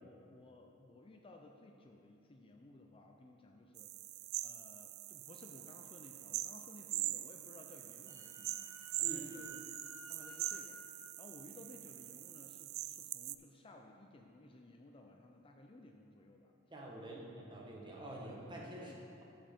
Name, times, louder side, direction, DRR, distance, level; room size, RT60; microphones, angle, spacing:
voice 1, 0.0-3.9 4.4-8.7 9.0-9.7 10.1-16.5 17.0-17.5 18.8-19.0, left 2 dB, 25° left, 2 dB, 0.5 m, -58 dB
sound 1, 3.8-13.3, right 16 dB, 90° right, 0.3 m, -43 dB
Wind instrument woodwind instrument, 7.8-10.7, equal, 60° left, 1.0 m, -54 dB
voice 2, 16.7-18.9, right 1 dB, 25° right, -3 dB, 1.3 m, -47 dB
13.0 x 5.2 x 4.4 m, 2.6 s
head